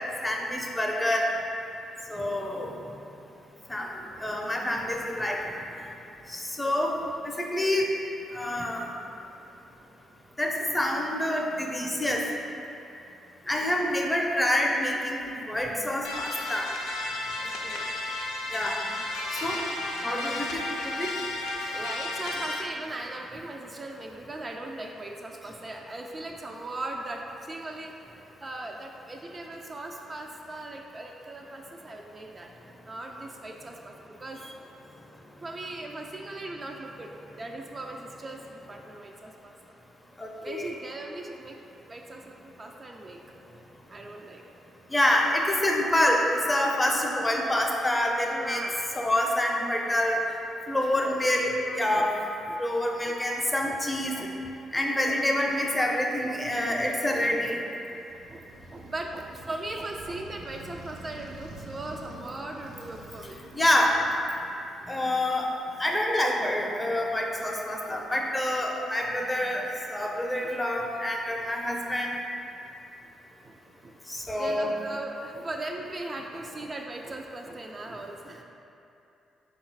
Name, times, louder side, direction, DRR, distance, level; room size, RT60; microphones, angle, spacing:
voice 1, 0.2-1.3 2.1-2.7 3.7-3.9 4.2-5.4 6.3-6.9 7.2-7.9 8.3-8.9 10.4-12.2 13.5-15.2 15.5-16.7 18.5-18.7 19.3-19.6 20.0-20.6 20.8-21.1 40.2-40.7 44.9-48.6 49.0-50.2 50.7-52.1 52.6-54.2 54.7-57.6 63.5-63.9 64.9-65.5 65.8-69.6 69.9-72.2 74.1-74.7, left 1 dB, 15° left, 0 dB, 0.6 m, -27 dB
sound 1, 16.0-22.6, left 2 dB, 85° left, 0.4 m, -33 dB
voice 2, 17.4-18.3 21.7-32.5 32.8-34.6 35.4-37.1 37.4-39.5 40.4-41.6 41.9-43.2 43.9-44.4 48.3-48.8 50.7-51.2 51.6-52.6 53.1-53.2 53.6-53.8 54.2-54.3 54.7-55.2 56.7-56.8 57.1-57.2 57.9-58.0 58.3-63.4 70.4-70.6 70.8-71.2 73.4-73.6 73.8-74.0 74.3-78.4, right 2 dB, 35° right, 1 dB, 0.3 m, -39 dB
Motorcycle, 58.1-64.8, right 2 dB, 85° right, 0.5 m, -47 dB
3.8 x 2.4 x 4.5 m, 2.8 s
supercardioid pair, 60°, 0 cm